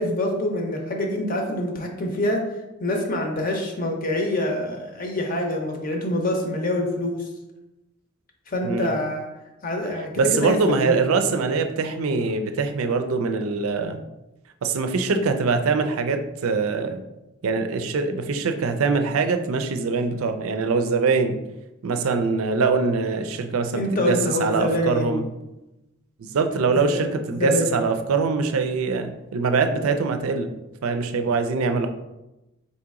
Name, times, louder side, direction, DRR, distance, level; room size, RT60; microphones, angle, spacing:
voice 1, 0.0-2.4 2.8-7.2 8.5-9.3 9.6-11.0 23.7-25.3 26.7-27.0 27.3-27.8, left 1 dB, 40° left, 1 dB, 0.7 m, -26 dB
voice 2, 10.2-14.0 14.6-17.0 17.4-21.4 21.8-25.2 26.2-30.5 30.8-31.9, right 4 dB, 80° right, 7 dB, 0.4 m, -23 dB
4.1 x 2.9 x 3.6 m, 0.98 s
head